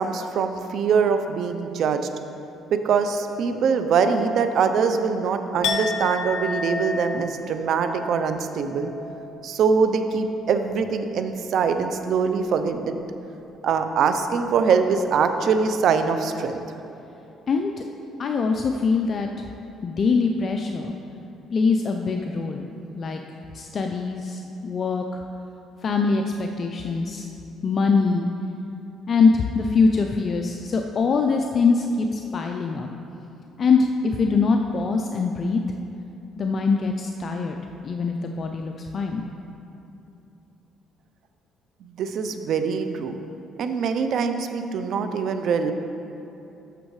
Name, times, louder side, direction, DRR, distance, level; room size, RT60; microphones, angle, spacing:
voice 1, 0.0-2.1 2.7-8.9 9.4-13.0 13.6-16.6 41.8-43.2 43.6-45.7, right 5 dB, 65° right, 8 dB, 0.6 m, -23 dB
Chink clink, 5.6-11.6 11.9-12.3, left 3 dB, 75° left, 0.8 m, -33 dB
voice 2, 18.2-19.3 19.8-20.9 21.5-22.7 22.9-23.2 23.5-25.2 25.8-27.3 27.6-28.3 29.1-32.9 33.6-35.6 36.4-37.6 37.8-39.2, left 4 dB, 45° left, 3 dB, 0.5 m, -23 dB
13.5 x 6.3 x 3.2 m, 2.9 s
cardioid pair, 90°, 0 cm